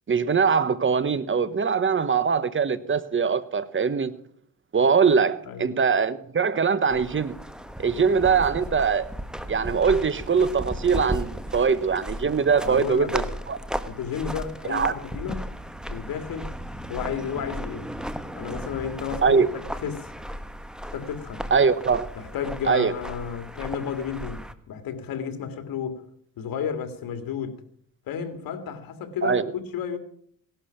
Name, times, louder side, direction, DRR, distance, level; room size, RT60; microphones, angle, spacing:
voice 1, 0.1-4.1 4.7-7.3 7.8-9.1 9.5-13.6 14.7-14.9 19.2-19.5 21.5-22.1 22.7-22.9 29.2-29.5, right 5 dB, 35° right, 1.2 m, -22 dB
sound 1, 6.9-24.5, equal, ahead, 1.4 m, -35 dB
voice 2, 12.6-13.3 13.9-15.5 15.9-16.5 16.9-17.9 18.3-19.4 19.8-20.1 20.9-21.5 22.1-26.1 26.4-27.6 28.1-30.0, left 7 dB, 80° left, 2.3 m, -32 dB
17.5 x 12.0 x 5.8 m
cardioid pair, 85°, 34 cm